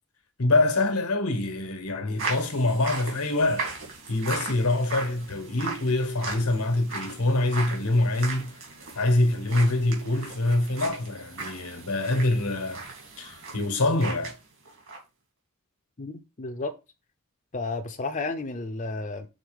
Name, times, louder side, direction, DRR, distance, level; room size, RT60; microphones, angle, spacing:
voice 1, 0.4-3.7 4.1-8.5 8.9-12.8 13.2-14.3, left 2 dB, 80° left, 1.4 m, -25 dB
sound 1, 2.2-14.4 14.6-15.0, right 3 dB, 65° right, 2.5 m, -37 dB
voice 2, 16.0-16.7 17.5-19.3, left 3 dB, 35° left, 0.6 m, -32 dB
6.5 x 4.0 x 5.1 m
head